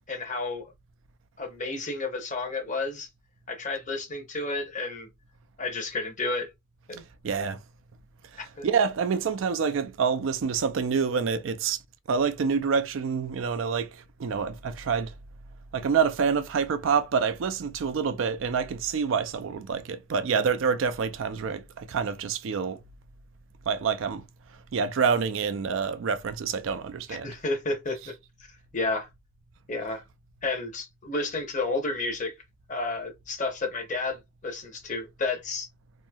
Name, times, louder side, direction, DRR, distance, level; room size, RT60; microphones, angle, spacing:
voice 1, 0.1-0.7 1.4-3.1 3.5-5.1 5.6-6.5 6.9-7.0 8.4-8.7 27.1-28.1 28.7-29.1 29.7-30.0 30.4-32.3 32.7-35.7, left 3 dB, 40° left, 0.8 m, -31 dB
voice 2, 7.2-7.6 8.6-11.8 12.1-13.9 14.2-15.1 15.7-22.8 23.7-24.2 24.7-27.3, right 6 dB, 70° right, 0.4 m, -27 dB
3.0 x 2.6 x 2.2 m
head